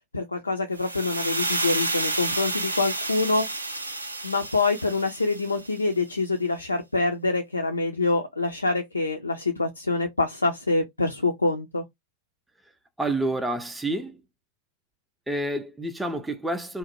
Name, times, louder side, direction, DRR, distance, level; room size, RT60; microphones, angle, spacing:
voice 1, 0.1-3.5 4.2-11.8, left 3 dB, 80° left, 0.3 m, -25 dB
sound 1, 0.8-5.8, right 2 dB, 80° right, 0.4 m, -30 dB
voice 2, 13.0-14.2 15.3-16.8, right 1 dB, 5° right, 0.4 m, -28 dB
2.5 x 2.0 x 2.7 m
figure-of-eight pair, 90°, 0 cm